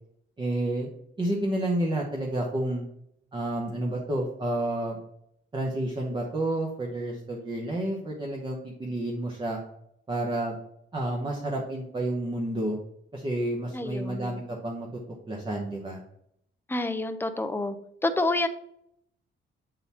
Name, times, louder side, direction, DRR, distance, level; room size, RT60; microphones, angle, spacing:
voice 1, 0.4-0.9 1.2-2.8 3.3-5.0 5.5-9.6 10.1-10.6 10.9-12.8 13.1-14.9 15.3-16.0, right 1 dB, 25° right, -1 dB, 0.9 m, -30 dB
voice 2, 13.7-14.4 16.7-17.8 18.0-18.5, left 2 dB, 10° left, 8 dB, 0.4 m, -28 dB
8.2 x 3.9 x 4.2 m, 0.73 s
wide cardioid pair, 165°, 21 cm